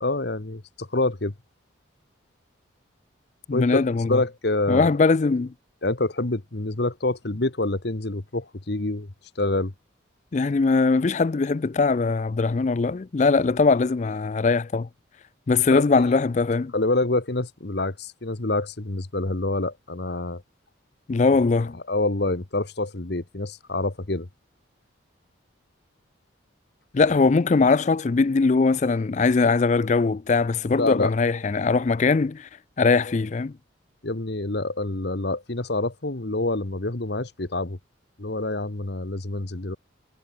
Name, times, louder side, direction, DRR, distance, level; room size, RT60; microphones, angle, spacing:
voice 1, 0.0-1.3 3.5-3.8 4.1-4.9 5.8-9.1 9.4-9.7 15.7-15.8 16.7-20.4 21.9-24.3 30.7-31.1 34.0-37.8 38.2-39.8, left 2 dB, 55° left, 1.3 m, -26 dB
voice 2, 3.5-4.2 4.7-5.5 10.3-14.9 15.5-16.7 21.1-21.8 26.9-32.5 32.8-33.5, left 4 dB, 35° left, 0.4 m, -21 dB
head